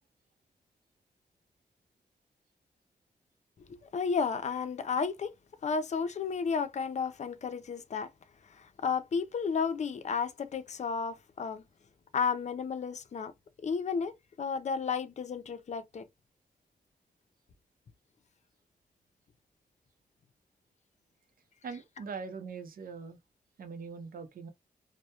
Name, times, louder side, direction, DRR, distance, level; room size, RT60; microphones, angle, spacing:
voice 1, 3.6-5.3 5.6-8.1 8.5-11.6 12.1-13.3 13.6-16.1, left 5 dB, 50° left, 0.4 m, -32 dB
voice 2, 21.6-23.2 23.6-24.5, right 5 dB, 70° right, 0.6 m, -41 dB
2.2 x 2.1 x 2.8 m
cardioid pair, 55°, 15 cm